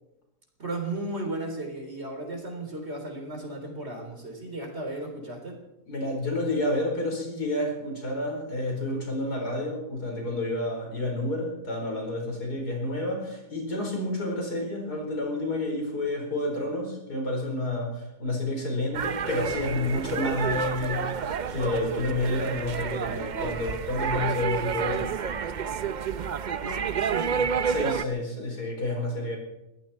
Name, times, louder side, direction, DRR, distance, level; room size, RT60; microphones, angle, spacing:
voice 1, 0.6-5.6 26.6-27.6, right 2 dB, 40° right, 3 dB, 3.9 m, -35 dB
voice 2, 5.9-21.2 21.5-25.1 27.7-29.4, left 2 dB, 85° left, 1 dB, 5.1 m, -29 dB
sound 1, 18.9-28.1, right 7 dB, 70° right, 0.4 m, -30 dB
22.5 x 14.5 x 4.4 m, 0.91 s
omnidirectional pair, 1.7 m